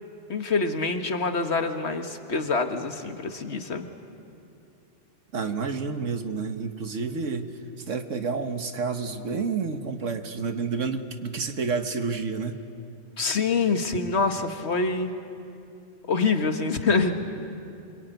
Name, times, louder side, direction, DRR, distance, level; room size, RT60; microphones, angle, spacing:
voice 1, 0.3-3.9 13.2-15.1 16.1-17.1, left 4 dB, 60° left, 6 dB, 1.7 m, -25 dB
voice 2, 5.3-7.5 7.8-12.6, right 5 dB, 75° right, 7 dB, 1.7 m, -29 dB
26.5 x 24.0 x 9.3 m, 2.6 s
omnidirectional pair, 1.3 m